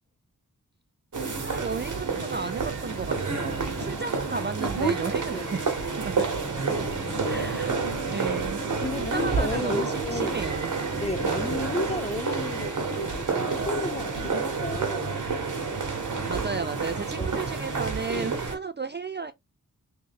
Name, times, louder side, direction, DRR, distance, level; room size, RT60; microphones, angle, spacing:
sound 1, 1.1-18.5, right 4 dB, 60° right, 1.2 m, -29 dB
voice 1, 1.2-5.6 6.0-6.6 7.2-10.7 11.3-11.5 16.3-19.3, right 4 dB, 30° right, 0.4 m, -34 dB
voice 2, 3.4-4.1 5.3-5.6 7.0-7.7 8.8-10.4 10.9-15.1 16.1-16.5 17.2-17.3 18.1-18.4, left 2 dB, 20° left, 0.6 m, -34 dB
3.3 x 3.1 x 3.4 m
wide cardioid pair, 70°, 35 cm